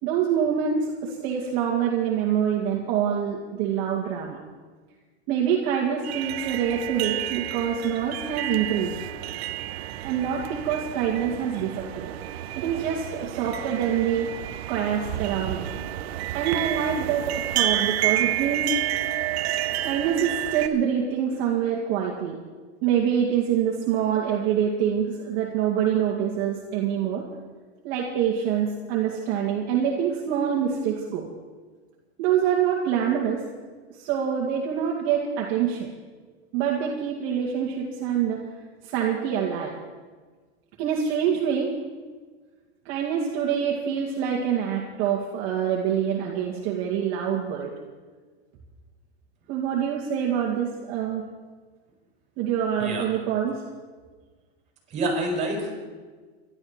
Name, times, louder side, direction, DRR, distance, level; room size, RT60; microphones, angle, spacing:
voice 1, 0.0-4.4 5.3-9.0 10.0-12.1 12.5-14.3 14.7-15.7 16.3-18.7 19.8-22.4 22.8-27.2 27.8-31.3 32.2-33.4 33.9-35.9 36.5-38.4 38.8-39.8 40.8-41.7 42.8-47.7 49.5-51.2 52.4-53.6, right 8 dB, 45° right, -2 dB, 2.4 m, -25 dB
sound 1, 6.0-20.7, right 13 dB, 70° right, 1.0 m, -30 dB
voice 2, 54.9-55.7, right 1 dB, 20° right, 0 dB, 5.7 m, -27 dB
24.5 x 12.5 x 4.5 m, 1.4 s
supercardioid pair, 140°, 32 cm